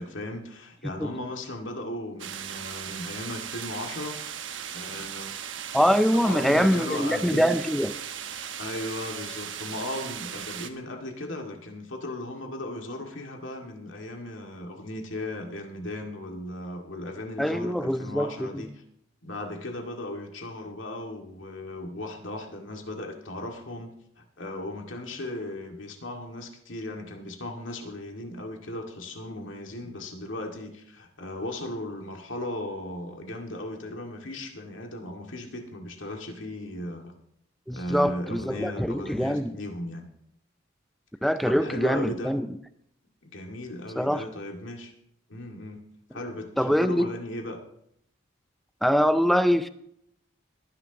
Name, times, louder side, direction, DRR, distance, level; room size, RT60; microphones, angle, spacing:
voice 1, 0.0-4.2 4.7-5.3 6.1-7.5 8.6-18.8 19.2-37.1 37.7-40.1 41.5-42.3 43.2-44.9 45.3-45.8 46.1-47.6, left 1 dB, 75° left, 2 dB, 2.2 m, -36 dB
sound 1, 2.2-10.7, right 8 dB, 70° right, 1.1 m, -37 dB
voice 2, 5.7-8.0 17.4-18.5 37.7-39.5 41.2-42.5 44.0-44.2 46.6-47.1 48.8-49.7, equal, ahead, 12 dB, 0.5 m, -24 dB
21.5 x 10.5 x 3.0 m, 0.72 s
head